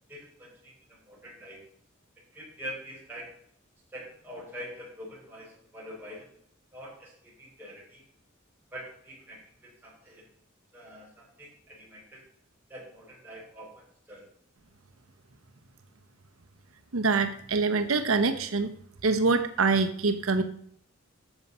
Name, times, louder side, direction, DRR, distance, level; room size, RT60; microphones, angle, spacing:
voice 1, 0.1-1.6 2.3-3.3 3.9-6.3 6.7-8.0 8.7-10.2 10.7-12.2 12.7-14.3, equal, 10° right, -6 dB, 5.1 m, -45 dB
voice 2, 16.9-18.7 19.0-20.4, right 4 dB, 90° right, 7 dB, 0.8 m, -25 dB
11.0 x 7.2 x 5.4 m, 0.63 s
head